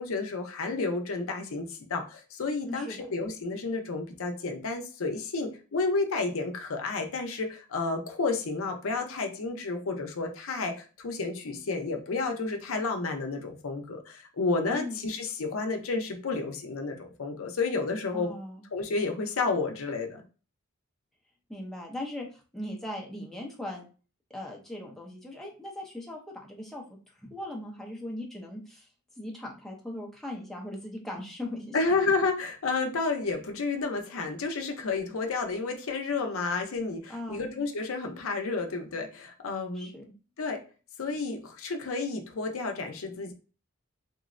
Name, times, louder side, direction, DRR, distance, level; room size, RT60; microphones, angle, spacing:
voice 1, 0.0-18.3 18.7-20.2 31.7-39.9 40.4-40.6 41.0-43.3, left 3 dB, 70° left, 4 dB, 0.5 m, -31 dB
voice 2, 2.7-3.1 14.7-15.0 18.1-18.6 21.5-22.3 22.5-23.8 24.3-26.8 27.2-28.9 29.2-31.8 37.1-37.4 39.7-40.0, left 1 dB, ahead, -2 dB, 0.5 m, -39 dB
3.7 x 2.0 x 2.4 m, 0.35 s
head